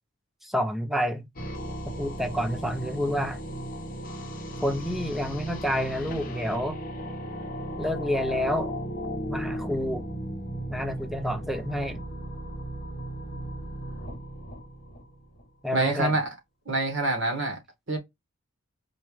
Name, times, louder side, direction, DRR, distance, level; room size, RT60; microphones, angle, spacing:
voice 1, 0.4-1.3 2.0-3.4 4.6-6.8 7.8-8.7 9.3-10.0 10.7-12.0 15.6-16.2, equal, ahead, 0.4 m, -29 dB
sound 1, 1.4-15.4, right 1 dB, 40° left, 0.9 m, -35 dB
voice 2, 15.7-16.3 16.6-17.6 17.9-18.0, right 2 dB, 55° right, 1.4 m, -26 dB
4.4 x 2.4 x 3.1 m
head